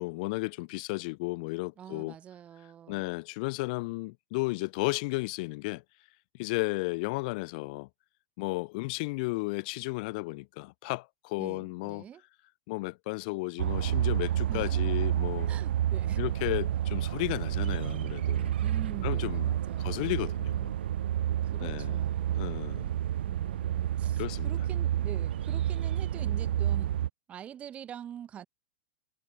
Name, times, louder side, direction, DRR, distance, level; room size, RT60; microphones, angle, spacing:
voice 1, 0.0-2.1 2.9-5.8 6.3-7.9 8.4-12.0 12.7-15.5 16.2-18.5 19.0-20.7 21.6-22.0 22.4-22.9 24.2-24.5, left 25 dB, 50° left, 1.5 m, -34 dB
voice 2, 1.8-3.1 11.4-12.2 14.5-14.8 15.5-16.2 18.6-20.0 21.4-22.6 23.3-27.0 27.3-28.5, right 9 dB, 25° right, 2.6 m, -45 dB
sound 1, 13.6-27.1, right 11 dB, 85° right, 0.6 m, -30 dB
supercardioid pair, 145°, 6 cm